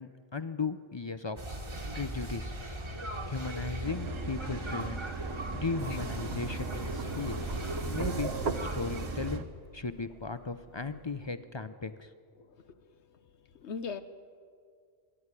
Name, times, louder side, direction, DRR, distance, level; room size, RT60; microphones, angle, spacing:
voice 1, 0.0-1.4 1.9-2.5 3.2-5.1 5.5-7.4 7.9-8.3 8.7-9.5 9.7-12.1, left 4 dB, 40° left, 12 dB, 0.4 m, -36 dB
sound 1, 1.4-9.4, right 1 dB, 25° right, 1.5 m, -37 dB
sound 2, 3.8-9.4, right 9 dB, 80° right, 1.2 m, -43 dB
sound 3, 5.7-11.3, right 4 dB, 55° right, 1.3 m, -40 dB
voice 2, 12.5-12.9 13.2-14.0, left 5 dB, 60° left, 11 dB, 1.2 m, -41 dB
26.0 x 11.0 x 9.7 m, 2.2 s
omnidirectional pair, 1.3 m